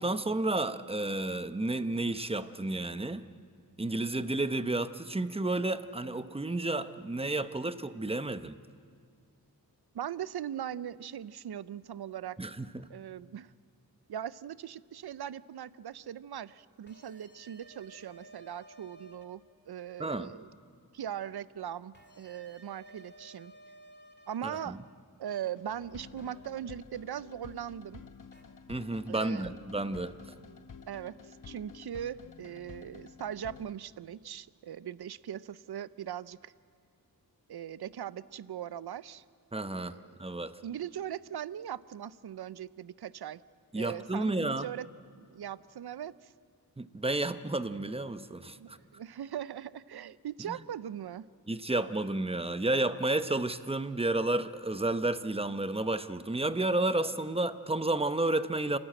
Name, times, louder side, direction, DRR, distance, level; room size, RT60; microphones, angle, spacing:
voice 1, 0.0-3.2 3.8-8.6 12.4-12.9 20.0-20.3 24.4-24.8 28.7-30.1 39.5-40.6 43.7-44.7 46.8-48.8 50.5-50.6 51.5-58.8, right 2 dB, 15° right, 12 dB, 0.8 m, -31 dB
voice 2, 9.9-12.4 12.9-13.5 14.1-19.4 19.7-20.5 20.9-23.5 24.3-24.8 25.2-28.0 29.1-29.5 30.9-36.5 37.5-39.2 39.8-40.2 40.6-43.4 43.7-44.9 45.2-46.3 48.6-51.3, right 10 dB, 80° right, 18 dB, 0.6 m, -40 dB
sound 1, 16.9-19.2 21.9-24.7 26.2-26.3 28.3-28.4, right 1 dB, 25° left, 2.4 m, -55 dB
sound 2, 25.4-33.7, left 5 dB, 55° left, 0.9 m, -51 dB
28.5 x 13.0 x 8.9 m, 2.1 s
wide cardioid pair, 75°, 38 cm